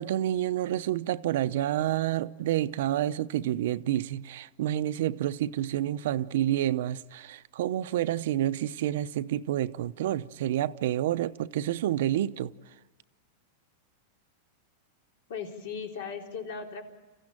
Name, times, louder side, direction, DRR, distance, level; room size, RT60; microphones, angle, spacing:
voice 1, 0.0-12.5, right 12 dB, 70° right, 0.7 m, -29 dB
voice 2, 15.3-16.8, left 6 dB, 75° left, 3.9 m, -37 dB
29.0 x 15.5 x 8.9 m
supercardioid pair, 145°, 0 cm